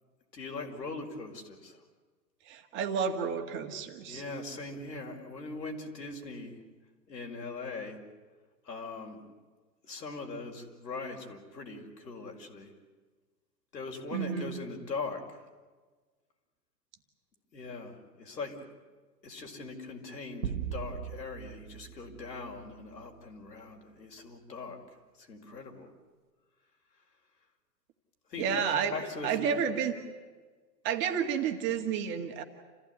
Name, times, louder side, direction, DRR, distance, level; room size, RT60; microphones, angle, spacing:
voice 1, 0.3-1.8 4.1-6.6 7.1-8.0 8.7-9.2 9.9-12.7 13.7-15.2 17.5-18.6 19.2-24.8 25.3-25.9 28.3-28.6 28.9-29.5, left 3 dB, 90° left, 2 dB, 5.7 m, -40 dB
voice 2, 2.5-4.2 14.1-14.6 28.4-29.0 29.2-29.9 30.8-32.4, right 7 dB, 25° right, 4 dB, 1.9 m, -31 dB
sound 1, 20.4-23.1, right 9 dB, 60° right, 1.6 m, -39 dB
28.5 x 15.5 x 9.7 m, 1.4 s
hypercardioid pair, 150°, 50 cm